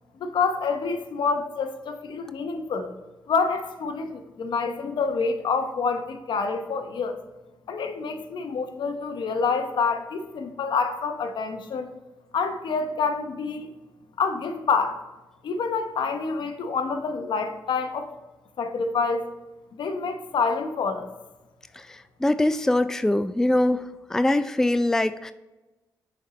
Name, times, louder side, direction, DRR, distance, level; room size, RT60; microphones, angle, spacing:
voice 1, 0.2-2.9 3.3-7.2 7.7-11.9 12.3-13.7 14.2-15.0 15.4-18.1 18.6-19.3 19.7-21.1, left 5 dB, 70° left, 7 dB, 0.8 m, -27 dB
voice 2, 22.2-23.8 24.1-25.3, left 1 dB, 5° left, 12 dB, 0.3 m, -22 dB
6.5 x 4.4 x 4.2 m, 1.1 s
supercardioid pair, 50°, 8 cm